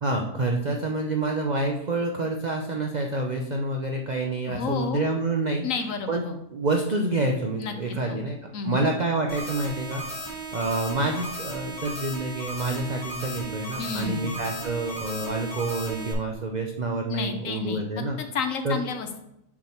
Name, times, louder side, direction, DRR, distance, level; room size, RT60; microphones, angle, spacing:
voice 1, 0.0-5.6 6.1-6.2 6.5-10.0 10.5-18.2 18.6-18.8, right 2 dB, 80° right, 2 dB, 0.3 m, -28 dB
voice 2, 4.5-5.0 5.6-6.4 7.6-8.3 8.5-8.8 13.8-14.4 17.1-17.8 18.2-19.2, left 5 dB, 65° left, 7 dB, 1.0 m, -31 dB
sound 1, 9.3-16.1, right 1 dB, 15° left, 1.7 m, -36 dB
6.2 x 5.9 x 4.3 m, 0.81 s
omnidirectional pair, 1.7 m